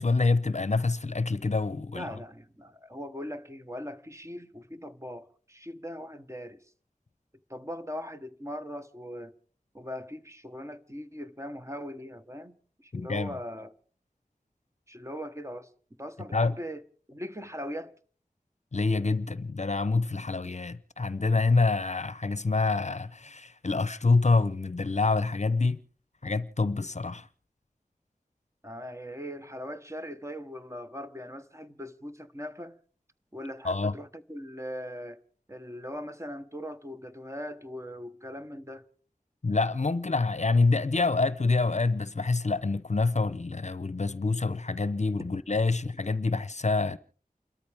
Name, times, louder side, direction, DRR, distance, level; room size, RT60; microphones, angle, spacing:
voice 1, 0.0-2.1 12.9-13.3 16.3-16.5 18.7-25.8 26.2-27.3 33.6-33.9 39.4-47.0, left 3 dB, 55° left, 0.7 m, -26 dB
voice 2, 1.9-6.6 7.5-9.3 9.7-13.7 14.9-15.7 16.0-16.8 17.1-17.9 28.6-32.8 33.3-35.2 35.5-38.8, equal, 20° right, 1.1 m, -40 dB
29.5 x 13.5 x 3.5 m
wide cardioid pair, 55°, 15 cm